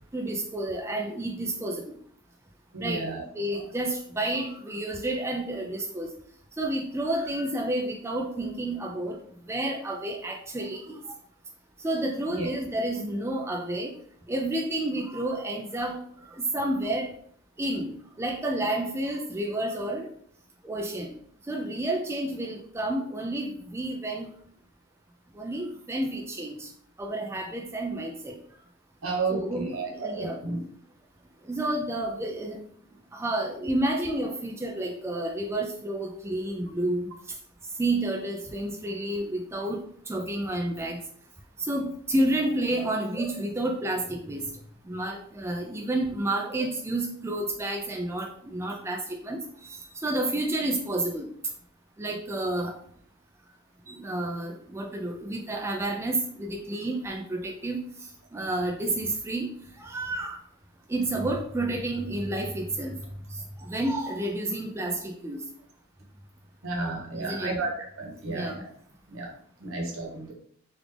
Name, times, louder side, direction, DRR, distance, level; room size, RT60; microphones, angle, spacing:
voice 1, 0.1-2.0 2.8-3.1 3.3-6.1 6.6-9.2 9.5-11.0 11.8-13.9 14.3-16.0 16.3-17.1 17.6-20.1 20.6-21.2 21.5-24.3 25.3-26.7 27.0-28.3 29.3-30.4 31.4-32.6 33.1-37.1 37.8-39.8 40.1-41.0 41.6-44.5 44.8-51.3 52.0-52.7 53.9-57.8 58.3-59.5 59.8-60.4 60.9-63.0 63.3-65.4 67.1-67.6 68.3-68.6, right 1 dB, 15° right, 1 dB, 0.3 m, -30 dB
voice 2, 2.7-3.2 12.3-12.5 29.0-30.6 66.6-67.7 68.0-68.7 69.1-69.3 69.6-70.3, right 3 dB, 75° right, 0 dB, 1.0 m, -32 dB
3.4 x 2.5 x 3.3 m, 0.62 s
head